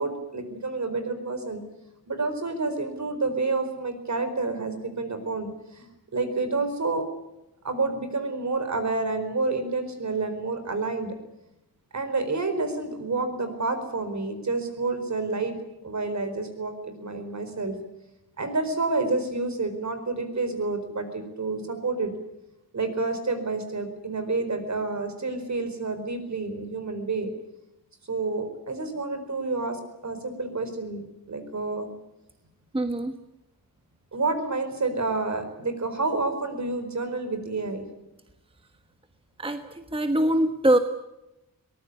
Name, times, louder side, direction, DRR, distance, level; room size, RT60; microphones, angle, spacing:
voice 1, 0.0-1.6 2.1-7.0 7.6-11.1 11.9-15.6 15.8-17.8 18.4-22.1 22.7-27.3 28.1-31.9 34.1-37.9, right 3 dB, 50° right, 8 dB, 4.5 m, -29 dB
voice 2, 32.7-33.1 39.4-40.8, right 1 dB, 15° right, 7 dB, 1.3 m, -23 dB
23.0 x 19.5 x 8.5 m, 0.92 s
wide cardioid pair, 140°, 35 cm